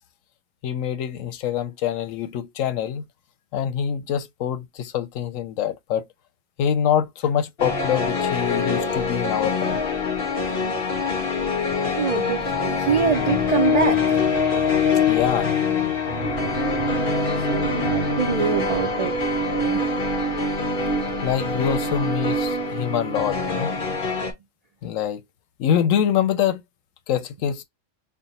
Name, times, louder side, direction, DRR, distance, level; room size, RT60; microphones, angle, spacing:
voice 1, 0.6-3.0 3.5-6.1 6.6-9.8 15.1-15.5 19.7-19.8 21.2-23.7 24.8-25.2 25.6-26.6 27.1-27.6, left 9 dB, 85° left, 1.0 m, -25 dB
sound 1, 7.6-24.3, left 3 dB, 45° left, 1.1 m, -24 dB
voice 2, 12.0-14.2 17.0-19.1, right 6 dB, 70° right, 0.3 m, -25 dB
3.3 x 2.1 x 4.1 m
omnidirectional pair, 1.3 m